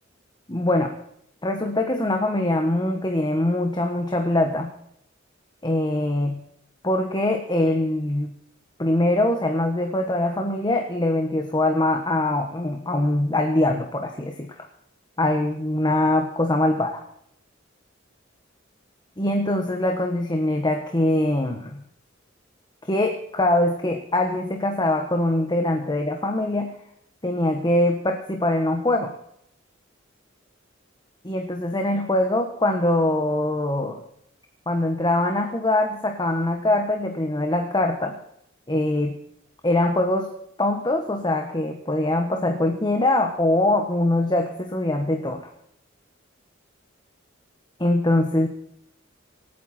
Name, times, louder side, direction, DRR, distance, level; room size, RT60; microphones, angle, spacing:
voice 1, 0.5-0.9 1.4-4.7 5.6-6.4 6.8-8.3 8.8-14.7 15.2-17.0 19.2-21.8 22.9-26.7 27.2-29.1 31.2-34.0 34.7-38.2 38.7-39.2 39.6-40.3 40.6-45.5 47.8-48.5, left 1 dB, 20° left, 4 dB, 1.3 m, -23 dB
25.5 x 9.3 x 4.4 m, 0.73 s
head